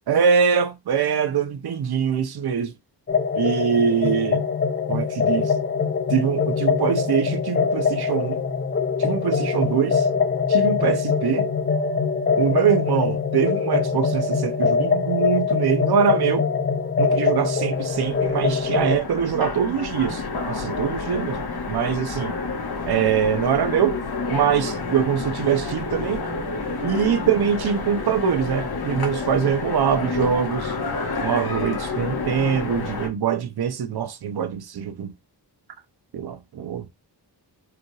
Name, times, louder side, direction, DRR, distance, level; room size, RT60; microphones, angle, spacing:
voice 1, 0.1-2.7 3.3-4.4 4.9-5.5 6.1-8.4 9.0-10.1 10.5-11.5 12.4-16.5 17.0-21.4 21.7-22.3 22.9-24.0 24.3-26.2 26.8-30.7 31.2-35.1 36.1-36.9, right 7 dB, 65° right, 0.6 m, -23 dB
sound 1, 3.1-19.0, left 5 dB, 30° left, 0.4 m, -23 dB
Train, 17.7-33.1, left 3 dB, 60° left, 1.1 m, -29 dB
4.8 x 2.3 x 3.1 m
wide cardioid pair, 170°, 41 cm